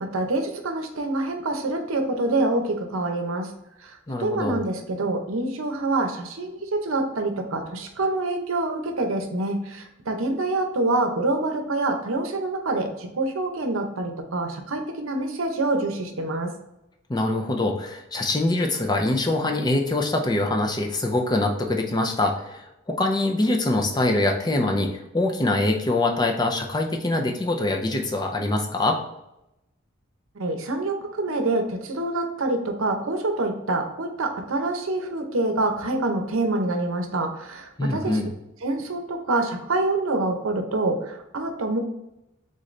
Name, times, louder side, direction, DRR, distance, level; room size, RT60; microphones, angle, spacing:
voice 1, 0.0-3.5 3.8-3.9 4.2-16.5 30.4-38.2 38.6-41.8, right 2 dB, 75° right, 5 dB, 0.7 m, -26 dB
voice 2, 4.1-4.6 17.1-29.0 37.8-38.3, left 2 dB, 20° left, 3 dB, 0.5 m, -24 dB
3.9 x 3.8 x 3.2 m, 0.89 s
head